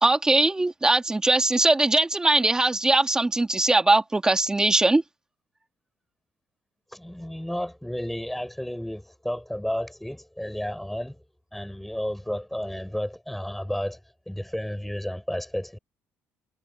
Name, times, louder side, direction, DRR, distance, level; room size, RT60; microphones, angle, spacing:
voice 1, 0.0-5.0, right 2 dB, 15° right, 2.2 m, -21 dB
voice 2, 6.9-11.2 11.5-14.0 14.3-15.8, equal, 5° left, 6.8 m, -32 dB
cardioid pair, 120°, 5 cm